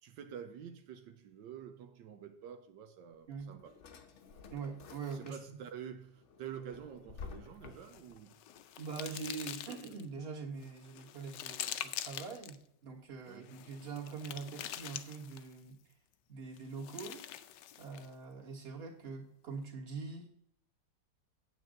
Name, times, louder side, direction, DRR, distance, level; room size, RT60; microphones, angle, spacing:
voice 1, 0.0-3.8 5.1-8.3 13.3-13.6, right 8 dB, 85° right, 1.4 m, -48 dB
Drawer open or close, 3.1-5.7 6.1-8.2, left 5 dB, 50° left, 0.9 m, -51 dB
voice 2, 4.5-5.6 8.8-15.9 16.3-17.5 17.8-20.3, right 5 dB, 35° right, 1.9 m, -44 dB
sound 1, 7.8-10.1 10.6-12.6 13.4-15.6 16.6-18.1, left 12 dB, 80° left, 1.2 m, -45 dB
8.8 x 8.2 x 3.8 m
omnidirectional pair, 1.9 m